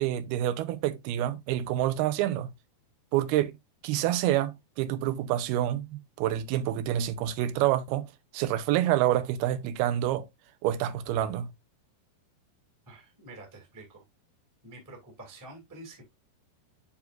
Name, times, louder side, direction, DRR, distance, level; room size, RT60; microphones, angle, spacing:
voice 1, 0.0-2.5 3.1-3.6 3.8-8.1 8.3-10.3 10.6-11.5, right 12 dB, 80° right, 2.6 m, -27 dB
voice 2, 12.9-14.0 14.6-16.1, right 2 dB, 5° right, 1.8 m, -48 dB
10.5 x 4.7 x 2.5 m
omnidirectional pair, 4.6 m